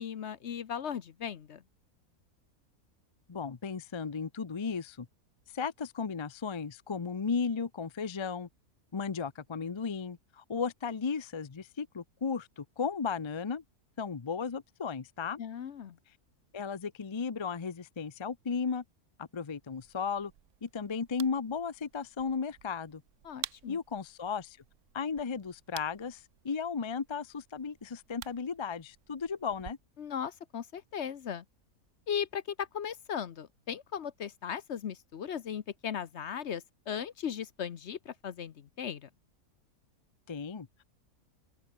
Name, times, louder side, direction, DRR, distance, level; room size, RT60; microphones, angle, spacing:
voice 1, 0.0-1.6 15.4-16.0 23.2-23.8 30.0-31.4 32.1-39.1, left 8 dB, 55° left, 1.0 m, -37 dB
voice 2, 3.3-5.1 5.5-8.5 8.9-13.6 14.0-15.4 16.5-18.8 19.2-20.3 20.6-23.0 23.7-24.6 24.9-29.8 40.3-40.7, left 5 dB, 35° left, 0.4 m, -35 dB
sound 1, 19.7-29.7, right 12 dB, 65° right, 0.9 m, -50 dB
open air
omnidirectional pair, 1.6 m